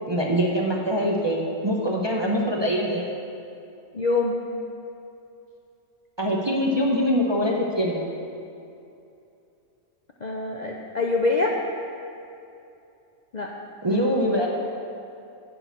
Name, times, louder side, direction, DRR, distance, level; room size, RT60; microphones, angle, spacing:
voice 1, 0.1-3.1 6.2-8.1 13.8-14.5, equal, 25° right, -2 dB, 0.6 m, -23 dB
voice 2, 3.9-4.4 10.2-11.6 13.3-13.5 13.9-14.3, left 3 dB, 50° left, 0 dB, 0.5 m, -25 dB
10.5 x 4.8 x 7.9 m, 2.7 s
omnidirectional pair, 1.5 m